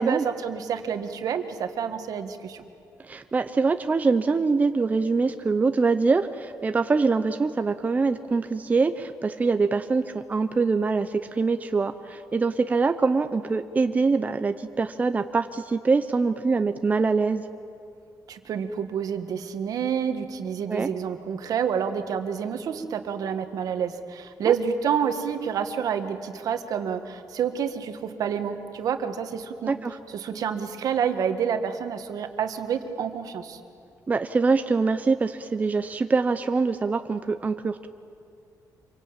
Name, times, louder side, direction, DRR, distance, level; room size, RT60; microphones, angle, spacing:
voice 1, 0.0-2.6 18.3-29.7 30.1-33.6, right 7 dB, 70° right, 8 dB, 1.7 m, -28 dB
voice 2, 3.0-17.4 20.7-20.9 24.5-24.6 29.7-30.0 34.1-37.9, right 4 dB, 25° right, 9 dB, 0.7 m, -24 dB
26.0 x 24.0 x 8.9 m, 2.5 s
cardioid pair, 145°, 7 cm